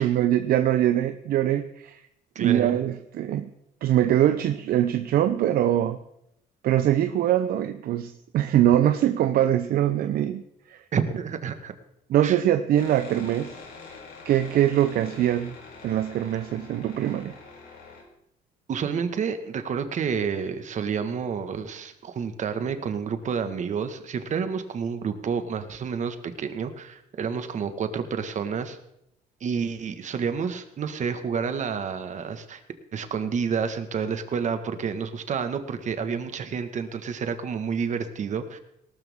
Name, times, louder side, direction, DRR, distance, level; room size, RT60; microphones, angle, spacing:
voice 1, 0.0-2.0 2.4-3.5 3.8-6.0 6.6-10.4 10.7-10.8 12.1-13.6 14.2-15.6 15.8-17.4, right 12 dB, 60° right, 10 dB, 0.7 m, -23 dB
voice 2, 2.3-2.7 10.9-11.7 12.2-12.4 18.7-28.8 29.4-32.6 32.9-38.6, right 6 dB, 45° right, 9 dB, 1.5 m, -29 dB
sound 1, 12.7-18.0, left 4 dB, 65° left, 4.1 m, -45 dB
18.5 x 12.5 x 3.6 m, 0.78 s
cardioid pair, 110°, 17 cm